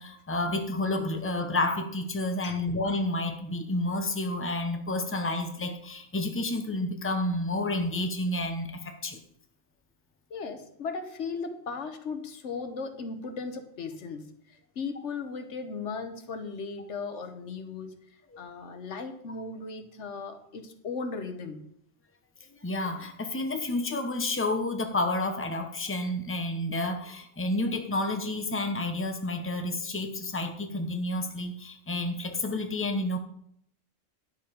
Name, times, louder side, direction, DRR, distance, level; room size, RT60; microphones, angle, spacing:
voice 1, 0.0-9.2 22.6-33.2, left 2 dB, 10° left, 6 dB, 0.9 m, -30 dB
voice 2, 10.3-18.0 18.4-21.6, left 4 dB, 90° left, 8 dB, 1.4 m, -37 dB
10.0 x 6.8 x 5.1 m, 0.71 s
omnidirectional pair, 1.2 m